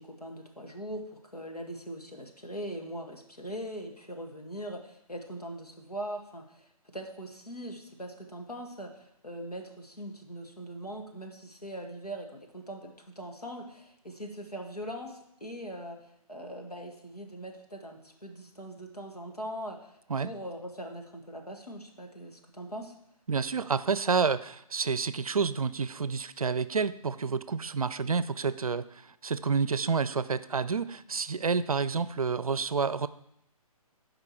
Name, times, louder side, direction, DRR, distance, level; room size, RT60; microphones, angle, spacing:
voice 1, 0.0-22.9, equal, 85° left, 2 dB, 1.8 m, -41 dB
voice 2, 23.3-33.1, right 5 dB, 65° right, 16 dB, 0.5 m, -29 dB
13.0 x 5.1 x 4.7 m, 0.77 s
figure-of-eight pair, 140°, 19 cm